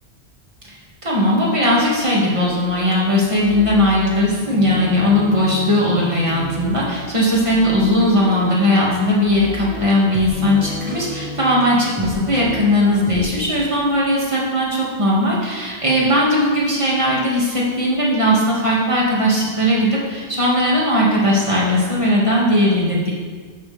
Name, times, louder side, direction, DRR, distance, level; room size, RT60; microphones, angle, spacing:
voice 1, 1.0-23.1, left 1 dB, 30° right, -6 dB, 2.2 m, -18 dB
sound 1, 2.4-13.5, right 1 dB, 10° right, 1.3 m, -33 dB
11.5 x 6.1 x 3.4 m, 1.5 s
omnidirectional pair, 1.1 m